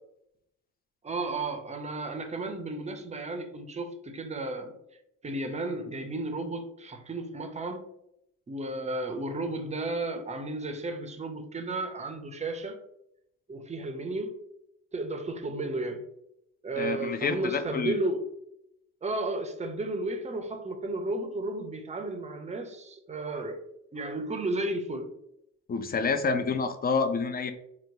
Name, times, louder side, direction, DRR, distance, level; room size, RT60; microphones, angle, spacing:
voice 1, 1.0-4.8 5.2-7.9 8.5-12.8 13.5-14.4 14.9-16.0 16.6-18.2 19.0-23.6 23.9-25.1, right 2 dB, 20° right, 6 dB, 0.6 m, -33 dB
voice 2, 16.8-18.0 25.7-27.5, left 4 dB, 25° left, 9 dB, 0.4 m, -28 dB
3.8 x 2.2 x 2.6 m, 0.79 s
hypercardioid pair, 60°, 38 cm